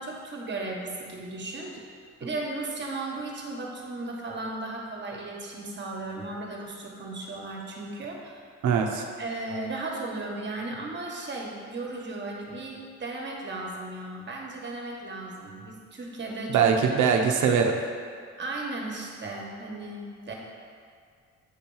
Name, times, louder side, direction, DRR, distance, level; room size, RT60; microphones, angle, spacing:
voice 1, 0.0-1.8 2.2-8.4 9.2-16.7 18.4-20.3, right 2 dB, 35° right, -1 dB, 1.4 m, -35 dB
voice 2, 8.6-9.1 16.5-17.8, right 6 dB, 75° right, 3 dB, 0.8 m, -22 dB
8.4 x 2.9 x 5.5 m, 2.1 s
cardioid pair, 90°, 30 cm